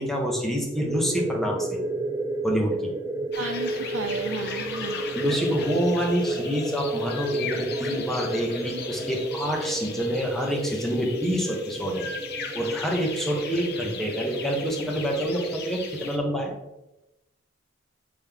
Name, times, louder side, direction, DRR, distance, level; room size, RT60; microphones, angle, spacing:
voice 1, 0.0-1.8 2.4-2.8 5.1-12.1 12.5-16.5, equal, ahead, 0 dB, 1.1 m, -27 dB
sound 1, 0.8-15.2, right 2 dB, 20° right, 0.4 m, -32 dB
sound 2, 3.3-16.2, left 5 dB, 55° left, 0.8 m, -38 dB
voice 2, 3.4-5.0, right 4 dB, 90° right, 7 dB, 0.6 m, -34 dB
7.8 x 3.6 x 3.5 m, 0.94 s
head